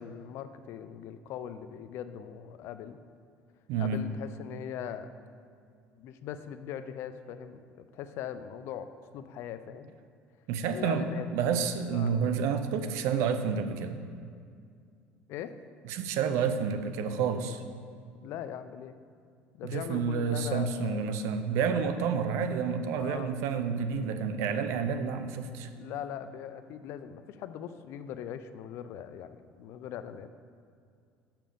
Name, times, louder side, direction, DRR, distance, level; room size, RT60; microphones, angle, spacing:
voice 1, 0.0-3.0 3.8-5.1 6.0-10.0 10.7-11.3 11.9-12.1 15.3-15.6 18.2-19.0 19.5-21.2 23.0-23.4 25.7-30.3, left 9 dB, 65° left, 11 dB, 0.5 m, -40 dB
voice 2, 3.7-4.1 10.5-14.0 15.8-17.6 19.6-25.7, right 6 dB, 75° right, 9 dB, 0.6 m, -29 dB
6.2 x 5.9 x 7.0 m, 2.3 s
cardioid pair, 125°, 5 cm